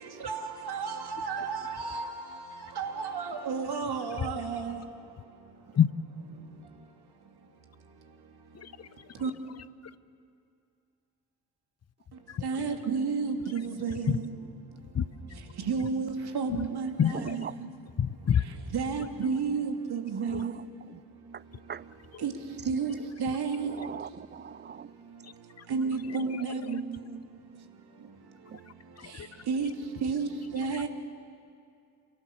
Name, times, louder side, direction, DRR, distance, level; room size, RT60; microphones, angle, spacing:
voice 1, 0.7-2.1 2.8-4.7 9.2-9.3 12.4-14.2 15.7-16.1 16.3-17.5 18.7-20.5 22.2-22.3 22.7-22.9 23.2-23.7 25.7-26.8 29.5-29.7 30.0-30.3 30.5-30.9, right 5 dB, 50° right, 2.9 m, -31 dB
voice 2, 8.5-9.6 9.8-10.0 12.3-12.7 13.5-14.2 14.9-15.4 16.5-17.5 18.0-18.5 19.0-19.1 20.3-20.5 22.1-22.3 23.3-23.4 25.2-25.7 26.1-26.8 29.0-29.5 30.7-30.9, left 8 dB, 30° left, 1.0 m, -31 dB
voice 3, 23.6-24.9 26.2-26.3 28.5-28.6, right 8 dB, 20° right, 0.5 m, -41 dB
28.5 x 18.0 x 7.2 m
figure-of-eight pair, 45°, 50 cm